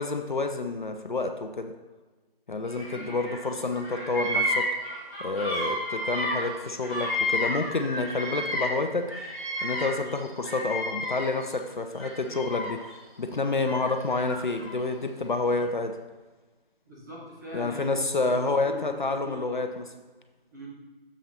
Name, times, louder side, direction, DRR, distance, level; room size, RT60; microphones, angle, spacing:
voice 1, 0.0-1.7 2.5-4.7 5.2-9.2 9.6-16.0 17.5-19.8, left 3 dB, 55° left, 6 dB, 0.5 m, -29 dB
Bird vocalization bird call bird song, 2.7-3.4 3.7-8.8 9.1-11.5 11.9-12.9 13.6-14.7, left 1 dB, 10° left, 1.2 m, -31 dB
voice 2, 16.8-19.7 20.5-20.7, right 1 dB, 20° right, -5 dB, 1.1 m, -41 dB
7.1 x 5.7 x 4.2 m, 1.3 s
figure-of-eight pair, 165°, 30 cm